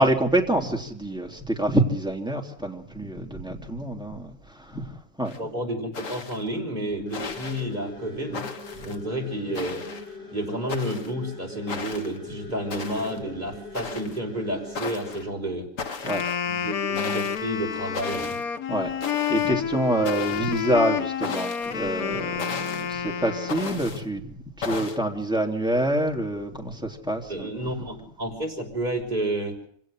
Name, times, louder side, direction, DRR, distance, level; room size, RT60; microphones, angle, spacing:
voice 1, 0.0-4.3 4.6-5.3 16.0-16.2 18.7-27.5, right 1 dB, 5° right, 1 dB, 3.2 m, -26 dB
sound 1, 5.3-5.4 5.9-6.5 7.1-7.7 8.3-9.0 9.5-10.1 10.7-11.1 11.7-12.2 12.7-13.2 13.7-14.2 14.8-15.2 15.8-16.4 17.0-17.4 17.9-18.4 19.0-19.5 20.1-20.7 21.2-21.7 22.4-22.9 23.5-24.1 24.6-25.0, left 4 dB, 60° left, 1.9 m, -36 dB
voice 2, 5.4-8.5 8.8-9.8 10.3-15.7 16.5-18.4 27.3-29.6, right 1 dB, 30° right, 1 dB, 6.0 m, -30 dB
sound 2, 7.1-15.3, left 3 dB, 35° left, 4.2 m, -41 dB
Wind instrument woodwind instrument, 16.0-24.0, left 8 dB, 75° left, 1.5 m, -29 dB
26.0 x 17.5 x 6.5 m, 0.62 s
omnidirectional pair, 1.6 m